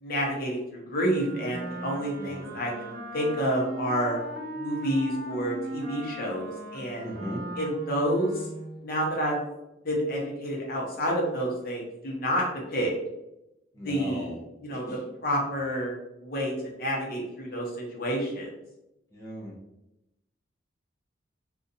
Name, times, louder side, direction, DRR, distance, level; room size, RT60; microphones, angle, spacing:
voice 1, 0.0-4.2 4.6-7.1 7.6-8.3 8.8-9.4 9.8-12.4 12.7-12.9 13.8-14.3 14.6-14.9 15.2-15.9 16.2-18.5, equal, 55° left, -2 dB, 0.9 m, -29 dB
Wind instrument woodwind instrument, 1.0-8.8, right 1 dB, 55° right, 1.0 m, -38 dB
voice 2, 7.0-7.4 13.7-14.4 14.7-15.0 19.1-19.6, equal, 15° left, -6 dB, 0.8 m, -37 dB
2.6 x 2.4 x 4.0 m, 0.88 s
head